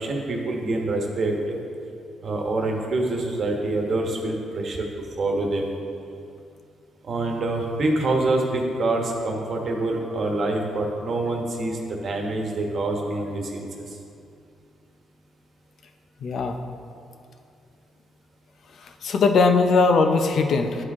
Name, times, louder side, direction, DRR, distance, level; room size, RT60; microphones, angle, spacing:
voice 1, 0.0-1.6 2.2-5.8 7.0-13.8, right 2 dB, 50° right, 1 dB, 1.2 m, -26 dB
voice 2, 16.2-16.6 18.7-20.8, left 4 dB, 60° left, 6 dB, 0.6 m, -20 dB
11.0 x 4.8 x 3.6 m, 2.4 s
cardioid pair, 90°, 0 cm